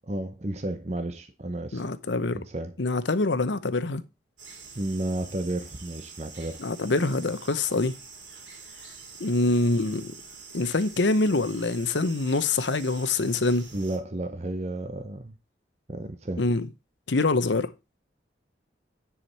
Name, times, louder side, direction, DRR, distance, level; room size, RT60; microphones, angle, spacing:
voice 1, 0.1-1.8 2.3-2.8 4.8-6.6 13.7-15.4 15.9-16.4, right 1 dB, 35° right, 0.8 m, -32 dB
voice 2, 1.7-2.4 2.8-4.0 6.6-7.9 9.2-10.1 10.5-13.7 16.4-16.7 17.1-17.7, left 3 dB, 75° left, 0.8 m, -25 dB
sound 1, 4.4-14.0, right 4 dB, 85° right, 3.5 m, -46 dB
9.8 x 5.0 x 4.3 m
head